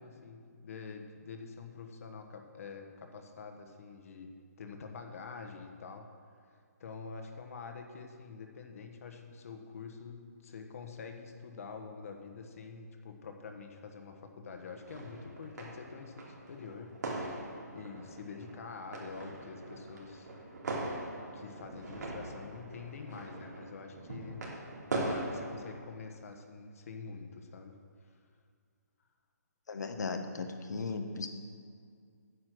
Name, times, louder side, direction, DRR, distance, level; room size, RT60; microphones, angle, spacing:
voice 1, 0.0-4.3 4.6-6.1 6.8-17.4 17.7-20.3 21.3-24.5 24.9-27.8, left 5 dB, 55° left, 4 dB, 1.2 m, -46 dB
sound 1, 14.6-25.8, right 2 dB, 75° right, 2.9 m, -41 dB
voice 2, 29.7-31.3, left 4 dB, 75° left, 7 dB, 1.1 m, -36 dB
9.7 x 7.3 x 6.1 m, 2.2 s
hypercardioid pair, 155°, 9 cm